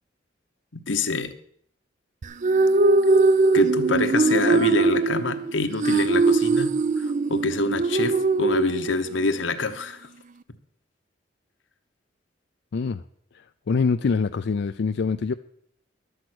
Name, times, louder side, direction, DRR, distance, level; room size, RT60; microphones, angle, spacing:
voice 1, 0.7-1.3 3.5-10.1, left 3 dB, 80° left, 9 dB, 1.0 m, -26 dB
sound 1, 2.2-9.3, right 3 dB, 40° right, 0.4 m, -21 dB
voice 2, 12.7-13.0 13.7-15.3, left 5 dB, 65° left, 8 dB, 0.4 m, -24 dB
12.0 x 8.0 x 6.1 m, 0.68 s
head